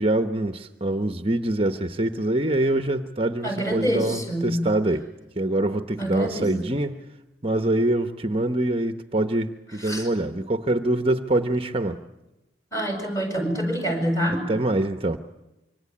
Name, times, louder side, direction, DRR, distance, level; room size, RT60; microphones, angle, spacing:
voice 1, 0.0-5.0 5.4-7.0 7.4-12.0 14.5-15.2, right 1 dB, 30° right, 9 dB, 1.0 m, -24 dB
voice 2, 3.4-4.6 6.0-6.5 9.8-10.1 12.7-14.5, equal, 15° left, 5 dB, 7.5 m, -26 dB
26.0 x 24.5 x 8.7 m, 0.97 s
head